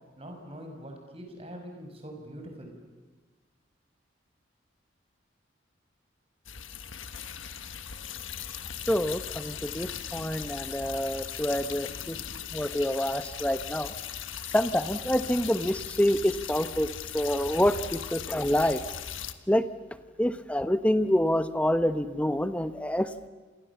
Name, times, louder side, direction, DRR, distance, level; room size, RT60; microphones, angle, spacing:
voice 1, 0.2-2.7, equal, 30° right, 3 dB, 5.7 m, -43 dB
sound 1, 6.4-19.3, left 8 dB, 90° left, 1.4 m, -38 dB
voice 2, 8.9-12.2 12.5-13.9 14.5-16.9 17.1-18.8 19.5-19.6 20.2-23.3, equal, 5° left, 10 dB, 0.9 m, -27 dB
30.0 x 27.5 x 7.2 m, 1.3 s
head